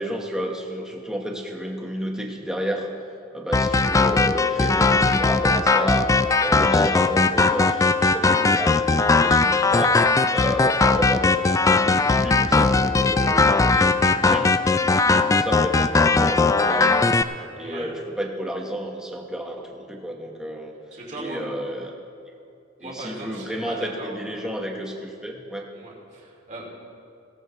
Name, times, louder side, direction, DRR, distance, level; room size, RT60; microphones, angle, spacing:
voice 1, 0.0-2.9 3.3-6.1 6.4-14.5 14.8-17.0 17.5-20.7 21.1-21.9 22.8-25.7, equal, 5° right, 0 dB, 1.2 m, -31 dB
sound 1, 3.5-17.2, left 3 dB, 15° left, 0.3 m, -19 dB
voice 2, 17.6-17.9 20.2-20.3 20.9-21.4 22.8-24.6 25.7-26.7, right 2 dB, 40° right, -3 dB, 2.5 m, -38 dB
17.5 x 14.0 x 3.1 m, 2.5 s
head